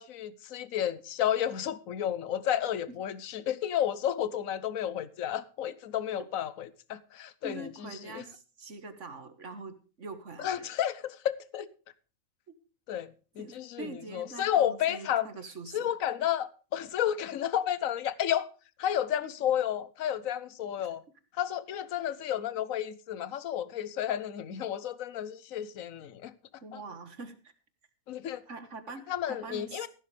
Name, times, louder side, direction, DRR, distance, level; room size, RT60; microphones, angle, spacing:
voice 1, 0.0-8.2 10.4-11.7 12.9-15.3 15.7-18.5 18.8-21.0 21.4-26.3 28.1-28.4 29.1-29.9, left 10 dB, 75° left, 1.3 m, -32 dB
voice 2, 7.4-10.7 13.4-16.0 20.8-20.9 26.6-27.3 28.5-29.9, right 3 dB, 60° right, 1.9 m, -44 dB
15.0 x 12.5 x 3.3 m
omnidirectional pair, 1.4 m